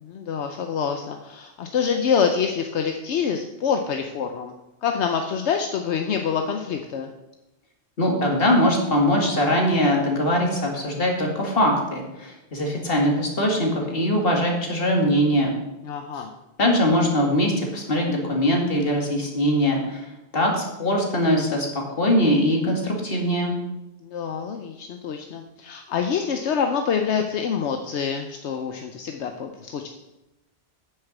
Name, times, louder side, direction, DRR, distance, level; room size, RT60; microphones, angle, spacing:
voice 1, 0.0-4.5 4.8-7.1 15.9-16.3 24.0-29.9, left 6 dB, 80° left, 5 dB, 1.0 m, -26 dB
voice 2, 8.0-15.5 16.6-20.0 20.3-23.6, equal, 55° left, 0 dB, 2.4 m, -22 dB
9.3 x 6.6 x 7.2 m, 0.99 s
omnidirectional pair, 1.1 m